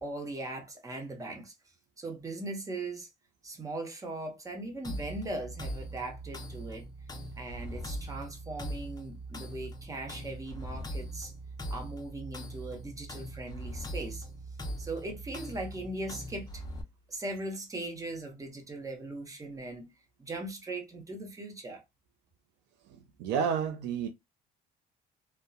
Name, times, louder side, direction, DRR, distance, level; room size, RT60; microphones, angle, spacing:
voice 1, 0.0-1.5 2.0-3.1 3.4-6.9 7.4-11.3 11.7-14.2 14.8-16.6 17.1-19.9 20.2-21.8, right 2 dB, 20° right, 0.9 m, -39 dB
sound 1, 4.8-16.8, right 1 dB, 20° left, 0.6 m, -41 dB
voice 2, 22.9-24.1, right 7 dB, 90° right, 0.5 m, -31 dB
2.7 x 2.2 x 2.3 m
cardioid pair, 110°, 17 cm